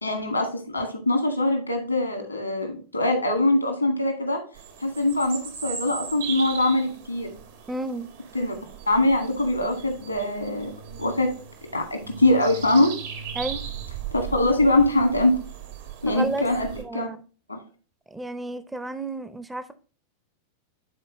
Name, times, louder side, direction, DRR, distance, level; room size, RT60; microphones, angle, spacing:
voice 1, 0.0-4.4 4.8-7.3 8.3-8.5 8.9-10.7 11.0-11.3 11.7-12.9 14.1-15.4 16.0-17.1 17.5-17.6, left 1 dB, 85° left, 1.8 m, -23 dB
sound 1, 4.5-16.8, right 8 dB, 60° right, 1.3 m, -38 dB
voice 2, 7.7-8.1 13.3-13.6 16.1-16.5 16.8-17.2 18.1-19.7, right 2 dB, 10° right, 0.6 m, -31 dB
8.8 x 4.4 x 3.1 m
figure-of-eight pair, 90°, 0 cm